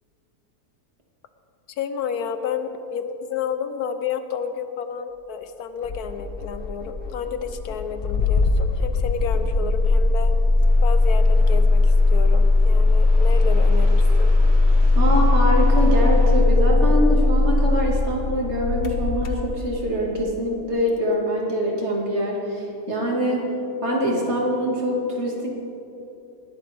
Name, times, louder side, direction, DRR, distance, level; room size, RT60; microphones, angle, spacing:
voice 1, 1.8-10.3 10.8-14.3, left 7 dB, 80° left, 9 dB, 1.2 m, -30 dB
Engine starting, 5.8-20.0, left 2 dB, 45° left, 0.9 m, -18 dB
sound 1, 10.6-16.4, equal, 75° right, 4.0 m, -43 dB
voice 2, 15.0-23.5 23.8-25.5, equal, 45° right, -1 dB, 2.2 m, -24 dB
19.5 x 11.5 x 3.4 m, 2.9 s
omnidirectional pair, 1.6 m